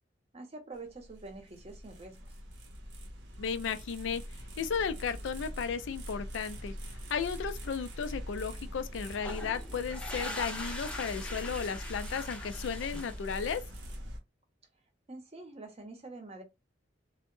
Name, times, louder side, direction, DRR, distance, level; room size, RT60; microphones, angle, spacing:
voice 1, 0.3-2.3 15.1-16.4, right 2 dB, 35° right, 0.6 m, -46 dB
sound 1, 0.7-14.2, equal, 75° right, 0.6 m, -43 dB
voice 2, 3.4-4.2 4.6-6.7 7.1-13.6, left 6 dB, 85° left, 0.4 m, -34 dB
sound 2, 9.2-13.7, left 1 dB, 5° left, 0.5 m, -42 dB
2.1 x 2.0 x 3.0 m
head